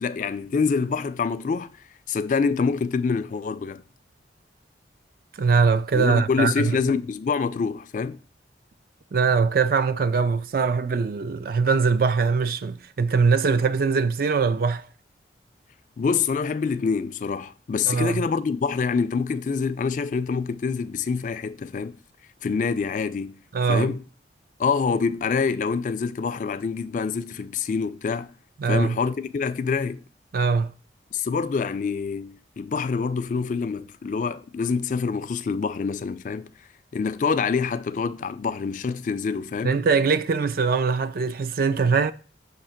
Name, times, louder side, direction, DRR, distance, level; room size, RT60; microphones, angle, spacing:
voice 1, 0.0-1.7 2.1-3.8 5.9-8.2 16.0-22.0 22.4-23.4 23.7-24.0 24.6-28.3 28.7-30.0 31.1-36.5 36.9-39.8, left 5 dB, 45° left, 0.3 m, -26 dB
voice 2, 5.4-6.8 9.1-14.8 17.8-18.2 23.5-23.9 28.6-29.0 30.3-30.7 39.6-42.1, right 5 dB, 50° right, 0.4 m, -22 dB
6.5 x 2.8 x 5.7 m
head